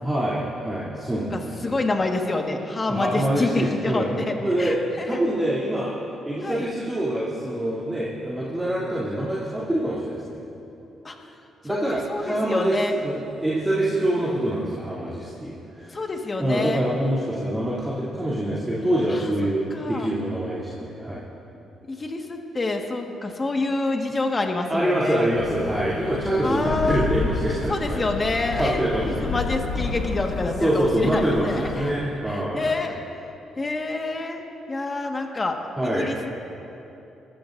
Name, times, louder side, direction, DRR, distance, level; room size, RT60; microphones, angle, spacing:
voice 1, 0.0-1.8 2.9-4.1 4.4-4.8 5.1-5.9 6.2-10.4 11.6-12.8 13.0-16.0 16.4-21.2 24.7-28.0 28.6-29.4 30.6-32.8 35.8-36.1, right 1 dB, 15° right, -9 dB, 2.9 m, -25 dB
voice 2, 1.3-5.2 6.4-6.7 11.0-11.2 11.6-12.9 15.9-16.8 19.1-20.1 21.9-25.3 26.4-27.1 27.7-31.9 32.3-33.0 33.6-34.4 34.7-35.6 35.9-36.3, left 2 dB, 30° left, 2 dB, 1.6 m, -27 dB
sound 1, 25.3-31.9, left 4 dB, 85° left, 1.0 m, -31 dB
23.0 x 14.0 x 2.6 m, 2.9 s
cardioid pair, 90°, 0 cm